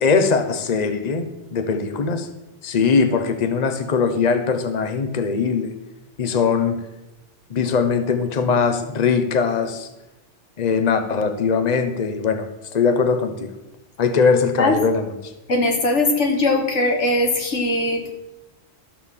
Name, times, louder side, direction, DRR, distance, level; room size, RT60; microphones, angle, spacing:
voice 1, 0.0-2.3 2.6-5.7 6.2-6.8 7.5-9.9 10.6-13.5 14.0-15.3, left 5 dB, 40° left, 8 dB, 0.9 m, -21 dB
voice 2, 15.5-18.0, left 2 dB, 80° left, 3 dB, 1.8 m, -20 dB
12.5 x 4.4 x 7.2 m, 0.97 s
omnidirectional pair, 1.2 m